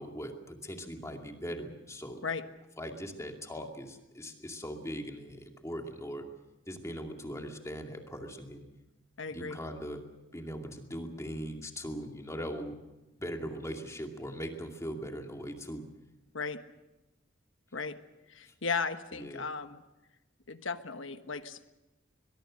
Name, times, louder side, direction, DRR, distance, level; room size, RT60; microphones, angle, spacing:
voice 1, 0.0-2.2 2.8-6.2 6.7-8.7 9.3-10.0 10.3-12.8 13.2-15.9 18.5-18.6 19.1-19.4, equal, 15° left, 3 dB, 2.4 m, -40 dB
voice 2, 9.2-9.6 16.3-16.6 17.7-17.9 18.3-19.8 20.5-21.6, left 5 dB, 70° left, 9 dB, 1.3 m, -35 dB
22.5 x 22.0 x 6.5 m, 1.0 s
head